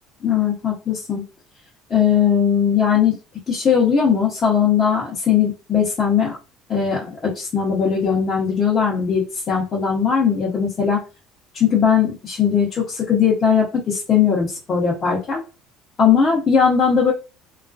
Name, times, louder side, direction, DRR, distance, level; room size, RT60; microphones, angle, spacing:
voice 1, 0.2-1.2 1.9-3.2 3.5-6.4 6.7-11.0 11.5-15.4 16.0-17.1, left 7 dB, 25° left, -5 dB, 0.8 m, -19 dB
3.5 x 2.4 x 2.4 m, 0.31 s
cardioid pair, 160°, 0 cm